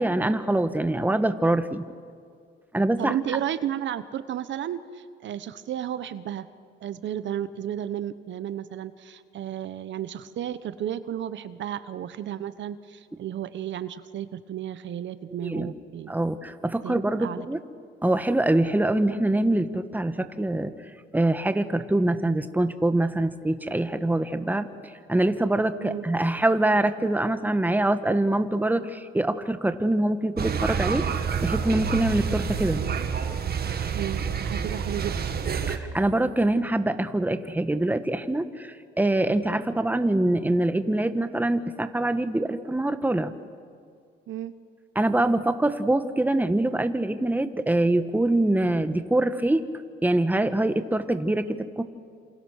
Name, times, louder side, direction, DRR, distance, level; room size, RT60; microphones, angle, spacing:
voice 1, 0.0-1.8 2.7-3.2 15.4-15.7 16.1-17.6 18.0-20.7 21.1-24.7 25.1-32.8 35.7-43.3 44.9-49.6 50.0-51.8, right 1 dB, 10° right, 10 dB, 1.4 m, -24 dB
voice 2, 3.0-6.5 6.8-16.1 16.8-17.5 25.8-26.0 33.9-35.4 44.3-44.5, right 10 dB, 70° right, 13 dB, 1.0 m, -33 dB
sound 1, 30.4-35.8, right 6 dB, 50° right, 2.0 m, -28 dB
28.5 x 27.5 x 6.5 m, 2.2 s
cardioid pair, 90°, 20 cm